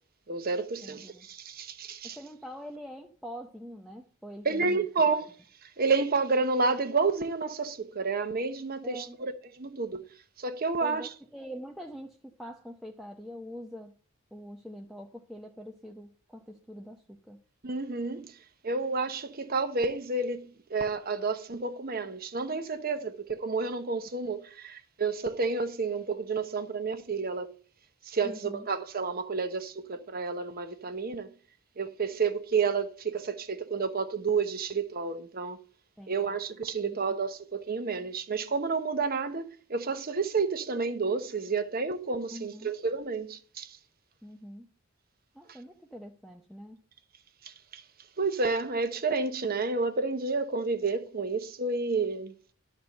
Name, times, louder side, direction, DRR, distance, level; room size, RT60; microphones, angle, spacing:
voice 1, 0.3-2.2 4.4-5.3 5.6-10.1 10.4-11.1 17.6-18.3 18.6-27.5 28.0-31.3 31.8-35.6 36.1-43.8 45.5-45.6 47.4-47.8 48.2-52.3, right 4 dB, 45° right, 1.0 m, -30 dB
voice 2, 0.8-1.3 2.0-4.9 8.8-9.2 10.8-11.1 11.3-13.9 14.3-17.4 28.2-28.7 36.0-36.3 36.8-37.1 42.3-42.7 44.2-44.7 45.3-46.8, equal, ahead, 0.7 m, -44 dB
11.5 x 4.4 x 6.5 m
head